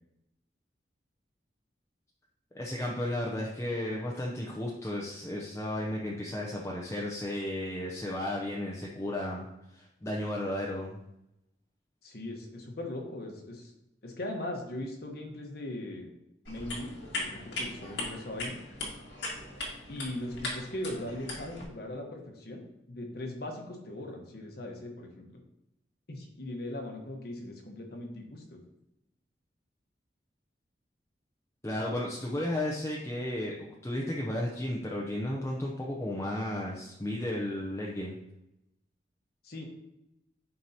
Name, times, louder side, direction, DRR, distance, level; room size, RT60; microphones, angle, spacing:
voice 1, 2.5-9.5 9.7-11.0 31.6-38.2, left 1 dB, 15° left, -4 dB, 0.7 m, -34 dB
voice 2, 12.0-13.7 14.0-16.1 16.5-18.6 19.9-25.4 26.1-28.6 39.4-39.6, left 1 dB, 60° left, 2 dB, 1.2 m, -39 dB
sound 1, 16.4-21.6, left 2 dB, 85° left, 1.8 m, -39 dB
11.0 x 4.6 x 2.9 m, 0.86 s
head